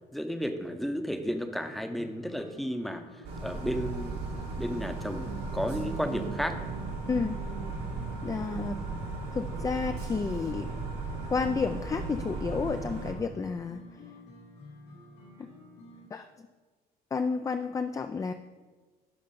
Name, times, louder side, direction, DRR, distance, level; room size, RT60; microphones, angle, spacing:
voice 1, 0.1-4.2 4.6-6.6, equal, ahead, 7 dB, 0.7 m, -33 dB
sound 1, 1.7-16.1, left 2 dB, 90° left, 2.8 m, -51 dB
sound 2, 3.2-13.1, right 3 dB, 75° right, 1.7 m, -36 dB
sound 3, 5.3-13.2, right 8 dB, 60° right, 0.6 m, -45 dB
voice 2, 7.1-7.4 8.2-8.8 9.3-10.7 11.3-13.8 15.4-15.5 16.1-16.5 17.1-18.3, left 5 dB, 20° left, 8 dB, 0.3 m, -31 dB
11.0 x 3.9 x 5.3 m, 1.3 s
cardioid pair, 110°, 17 cm